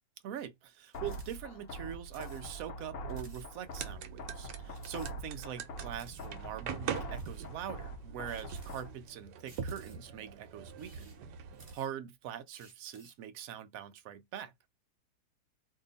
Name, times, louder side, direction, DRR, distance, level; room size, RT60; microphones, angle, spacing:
voice 1, 0.2-11.1 11.7-14.5, right 9 dB, 70° right, 0.9 m, -43 dB
sound 1, 0.9-8.9, right 1 dB, 65° left, 0.9 m, -44 dB
sound 2, 0.9-1.4 1.7-1.8 2.0-2.4 2.8-2.9 3.1-3.5 3.9-4.0 4.7-5.5 5.9-6.3 6.9-7.5 8.3-9.1 9.5-10.2 10.7-12.1 12.5-13.2, right 4 dB, 40° right, 1.0 m, -58 dB
sound 3, 3.6-11.7, right 7 dB, 85° right, 1.2 m, -43 dB
2.7 x 2.7 x 3.9 m
omnidirectional pair, 1.8 m